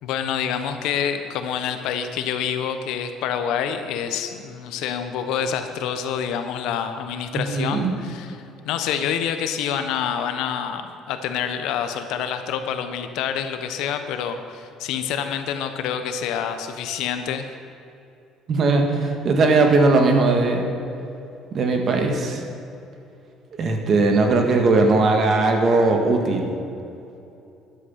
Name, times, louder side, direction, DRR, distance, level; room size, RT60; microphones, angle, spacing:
voice 1, 0.0-8.4 8.6-17.5, left 8 dB, 75° left, 8 dB, 1.1 m, -27 dB
voice 2, 7.3-7.9 18.5-20.7 21.5-22.4 23.6-26.5, right 3 dB, 40° right, 3 dB, 1.8 m, -19 dB
12.5 x 11.0 x 5.8 m, 2.7 s
cardioid pair, 140°, 0 cm